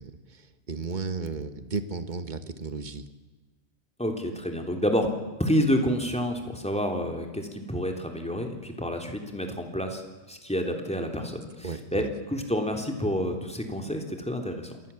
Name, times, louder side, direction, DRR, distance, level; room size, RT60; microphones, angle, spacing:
voice 1, 0.0-3.0 11.6-12.1, right 4 dB, 40° right, 10 dB, 1.5 m, -34 dB
voice 2, 4.0-5.1 5.4-10.0 10.3-14.7, equal, 5° left, 3 dB, 3.2 m, -29 dB
27.5 x 19.5 x 7.1 m, 1.3 s
omnidirectional pair, 1.3 m